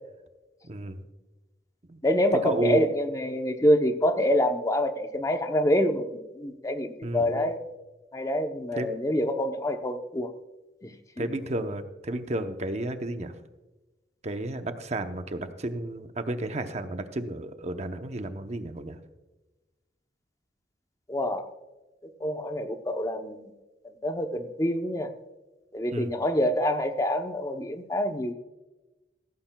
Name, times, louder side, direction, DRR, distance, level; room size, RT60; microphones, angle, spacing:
voice 1, 0.7-1.0 1.9-2.0 2.4-2.9 7.0-7.5 8.7-8.9 11.2-13.3 14.2-19.0 25.9-26.1, right 2 dB, 40° right, 8 dB, 0.8 m, -32 dB
voice 2, 2.0-7.6 8.1-10.3 10.8-11.3 21.1-21.5 22.2-23.5 24.0-25.1 25.7-28.3, left 1 dB, 20° left, 6 dB, 0.7 m, -26 dB
16.0 x 15.0 x 2.3 m, 1.1 s
head